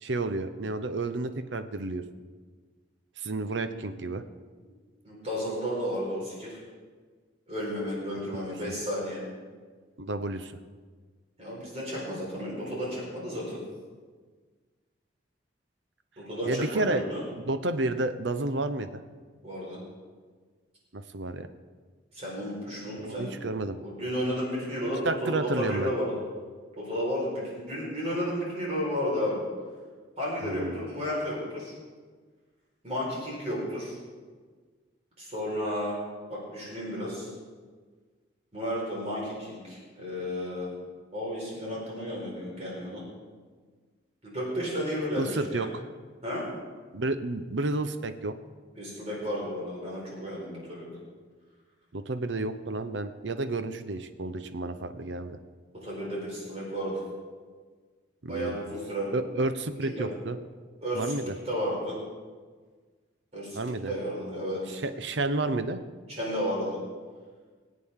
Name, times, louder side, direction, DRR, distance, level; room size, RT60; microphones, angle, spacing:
voice 1, 0.0-2.0 3.2-4.2 10.0-10.5 16.5-17.0 17.4-19.0 20.9-21.5 23.0-23.8 25.0-25.9 30.4-30.8 45.2-45.7 46.9-48.3 51.9-55.4 58.2-58.6 59.1-60.4 60.9-61.3 63.5-63.9 64.7-65.8, right 2 dB, 75° right, 10 dB, 0.8 m, -31 dB
voice 2, 5.0-6.6 7.5-9.2 11.4-13.6 16.2-17.2 19.4-19.8 22.1-23.3 23.7-26.2 26.8-29.4 30.2-31.8 32.8-34.0 35.2-36.0 36.3-37.3 38.5-40.8 41.1-43.0 44.2-45.7 46.2-46.4 48.8-50.9 55.8-57.0 58.3-59.1 59.8-60.1 60.8-61.2 61.4-62.0 63.3-64.8 66.1-66.8, equal, 35° right, -5 dB, 4.5 m, -32 dB
21.5 x 8.4 x 3.7 m, 1.5 s
head